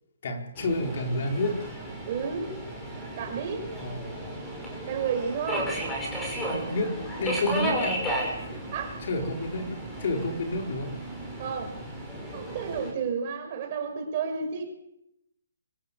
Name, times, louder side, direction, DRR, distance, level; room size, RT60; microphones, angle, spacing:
voice 1, 0.2-1.7 3.8-4.4 6.5-6.9 7.2-8.0 9.0-10.9, left 2 dB, 50° left, 2 dB, 4.5 m, -30 dB
Subway metro underground, 0.6-12.9, right 1 dB, 10° left, 5.9 m, -34 dB
voice 2, 2.1-2.5 3.2-3.6 4.9-5.8 8.7-9.0 11.4-11.8 12.3-14.6, right 6 dB, 30° right, 3 dB, 5.8 m, -31 dB
25.0 x 14.0 x 8.5 m, 0.81 s
hypercardioid pair, 165°, 0 cm